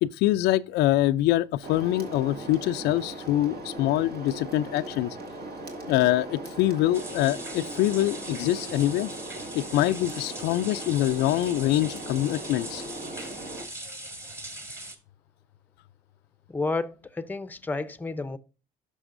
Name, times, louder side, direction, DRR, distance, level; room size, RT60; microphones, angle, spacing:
voice 1, 0.0-5.2 5.9-9.1 9.5-12.8, left 14 dB, 85° left, 0.4 m, -24 dB
sound 1, 1.6-13.6, right 1 dB, 65° right, 2.3 m, -39 dB
sound 2, 6.9-15.0, right 1 dB, 15° right, 1.5 m, -41 dB
voice 2, 16.5-18.4, left 3 dB, 10° left, 0.6 m, -31 dB
11.0 x 6.2 x 2.5 m
cardioid pair, 110°, 17 cm